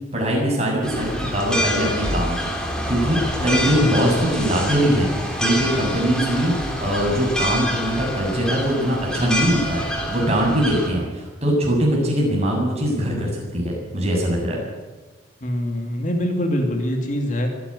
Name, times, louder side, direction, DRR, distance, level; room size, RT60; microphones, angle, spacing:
voice 1, 0.1-2.5 2.9-5.1 5.4-6.5 6.8-14.6, equal, 35° right, -1 dB, 7.0 m, -21 dB
sound 1, 0.8-10.9, equal, 5° left, 3.5 m, -26 dB
voice 2, 3.4-3.8 15.4-17.5, equal, 40° left, 3 dB, 2.7 m, -24 dB
24.0 x 11.5 x 9.9 m, 1.2 s
head